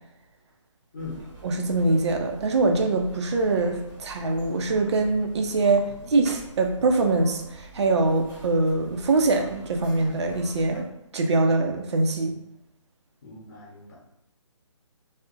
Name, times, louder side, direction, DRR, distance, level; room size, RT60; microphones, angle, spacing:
sound 1, 1.0-10.8, right 2 dB, 20° right, 0.8 m, -45 dB
voice 1, 1.4-12.3, right 3 dB, 60° right, 3 dB, 0.4 m, -23 dB
voice 2, 13.2-13.9, left 3 dB, 40° left, -5 dB, 0.8 m, -39 dB
2.5 x 2.0 x 2.4 m, 0.78 s
figure-of-eight pair, 145°, 17 cm